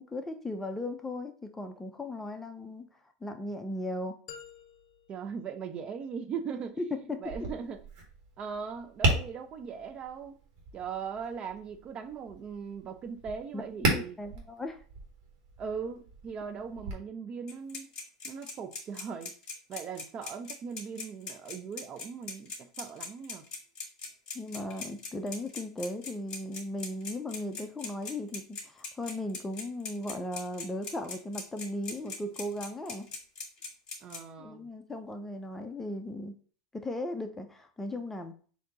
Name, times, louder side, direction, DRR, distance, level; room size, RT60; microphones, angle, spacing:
voice 1, 0.0-2.9 3.2-4.1 6.8-7.2 13.5-13.6 13.9-14.8 24.3-33.1 34.4-36.3 36.7-38.3, left 1 dB, 10° left, 0.6 m, -37 dB
sound 1, 4.3-6.3, left 7 dB, 70° left, 0.7 m, -51 dB
voice 2, 5.1-6.8 7.2-7.8 8.4-10.4 10.7-14.2 15.6-17.9 18.2-19.3 19.7-23.5 34.0-34.7, right 6 dB, 35° right, 0.5 m, -39 dB
Tap, 7.2-16.9, right 2 dB, 55° right, 1.6 m, -36 dB
sound 2, 17.5-34.2, left 5 dB, 35° left, 2.1 m, -40 dB
4.4 x 2.8 x 3.9 m
hypercardioid pair, 105°, 3 cm